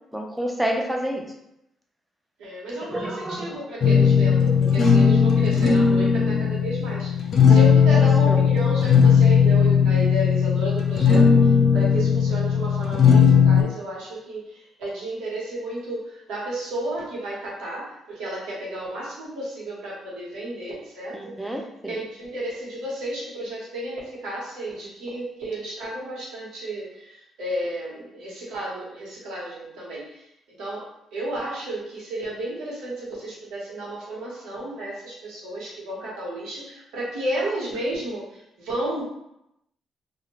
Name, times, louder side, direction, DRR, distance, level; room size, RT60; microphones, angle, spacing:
voice 1, 0.1-1.3 2.9-3.6 7.9-8.4 21.1-22.0, equal, 5° right, 1 dB, 0.6 m, -29 dB
voice 2, 2.4-21.5 21.8-30.2 30.6-39.0, right 1 dB, 85° right, -5 dB, 1.2 m, -32 dB
sound 1, 3.8-13.6, left 6 dB, 55° left, 0.5 m, -17 dB
2.6 x 2.4 x 3.0 m, 0.82 s
cardioid pair, 90°, 0 cm